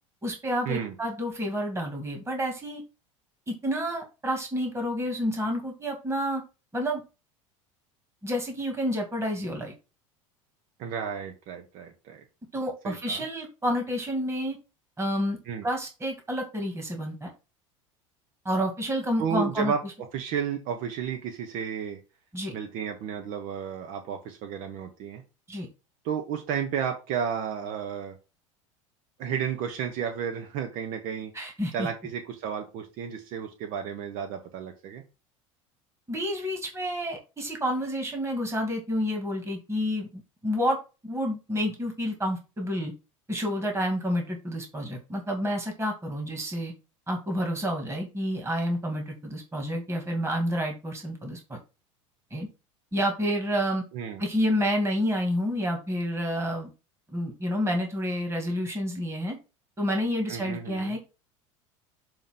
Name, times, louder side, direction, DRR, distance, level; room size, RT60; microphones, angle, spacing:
voice 1, 0.2-2.8 3.5-6.4 6.7-7.0 8.2-9.7 12.5-14.6 15.0-15.4 15.6-17.3 18.4-19.7 22.3-22.5 25.5-25.7 31.3-31.9 36.1-40.8 41.0-42.9 43.3-46.7 47.1-51.6 52.3-52.5 52.9-53.8 54.2-56.7 57.1-59.4 59.8-61.0, equal, 15° right, 2 dB, 2.4 m, -29 dB
voice 2, 10.8-12.2 12.8-13.2 15.5-15.6 19.2-19.8 20.1-22.0 22.5-25.2 26.0-28.2 29.2-31.3 31.7-35.0 53.9-54.2 60.3-60.9, right 7 dB, 55° right, 5 dB, 1.3 m, -32 dB
7.1 x 3.0 x 6.0 m, 0.30 s
hypercardioid pair, 80°, 17 cm